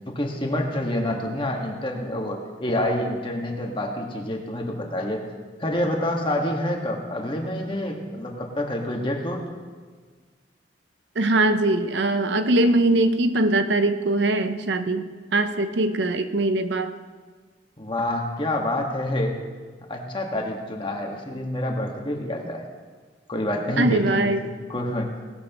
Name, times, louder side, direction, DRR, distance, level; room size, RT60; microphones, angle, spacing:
voice 1, 0.1-5.2 5.6-9.4 17.8-19.4 19.9-22.7 23.3-24.3 24.7-25.1, left 1 dB, 30° left, 1 dB, 1.6 m, -27 dB
voice 2, 11.2-16.9 23.8-24.5, right 2 dB, 70° right, 9 dB, 0.7 m, -22 dB
18.5 x 12.0 x 3.0 m, 1.5 s
head